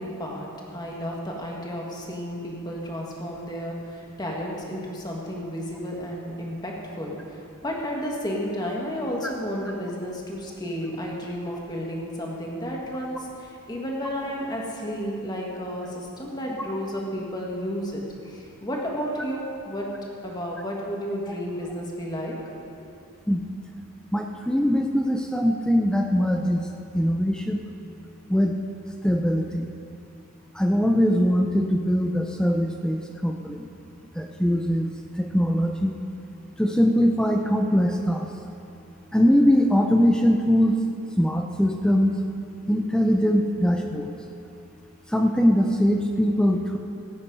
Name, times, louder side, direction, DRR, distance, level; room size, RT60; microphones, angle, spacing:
voice 1, 0.0-19.9 20.2-22.3, equal, 20° left, -2 dB, 1.7 m, -32 dB
voice 2, 24.1-26.6 26.9-27.6 28.3-28.6 29.0-29.7 30.5-33.7 34.2-34.9 35.2-35.9 36.6-38.3 39.1-40.8 41.2-42.2 42.7-44.1 45.1-46.8, equal, 5° left, 3 dB, 0.5 m, -22 dB
16.0 x 8.7 x 5.4 m, 2.6 s
head